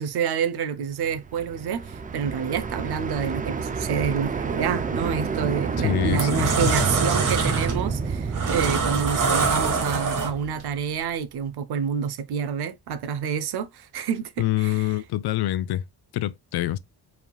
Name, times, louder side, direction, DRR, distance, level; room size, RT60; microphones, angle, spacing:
voice 1, 0.0-14.9, right 7 dB, 75° right, 0.7 m, -28 dB
sound 1, 1.1-11.1, right 5 dB, 20° right, 0.3 m, -29 dB
sound 2, 5.2-5.5 5.9-10.6, right 4 dB, 50° right, 1.3 m, -25 dB
voice 2, 5.8-6.7 14.4-15.8 16.1-16.8, left 14 dB, 75° left, 0.5 m, -26 dB
4.8 x 3.5 x 2.3 m
wide cardioid pair, 165°, 39 cm